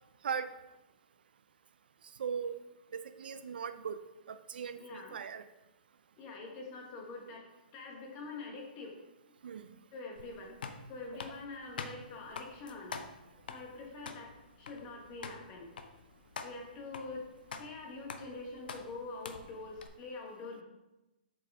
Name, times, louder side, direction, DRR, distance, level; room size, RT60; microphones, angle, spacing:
voice 1, 2.2-2.6 2.9-4.0 4.3-5.4 9.4-9.7, right 7 dB, 70° right, 12 dB, 0.5 m, -38 dB
voice 2, 4.8-5.1 6.2-8.9 9.9-10.5 10.9-13.0 13.5-15.7 16.4-17.2 17.6-20.6, left 3 dB, 20° left, 0 dB, 1.2 m, -45 dB
sound 1, 10.2-19.9, left 5 dB, 65° left, 0.7 m, -47 dB
8.0 x 5.0 x 3.5 m, 0.99 s
hypercardioid pair, 175°, 5 cm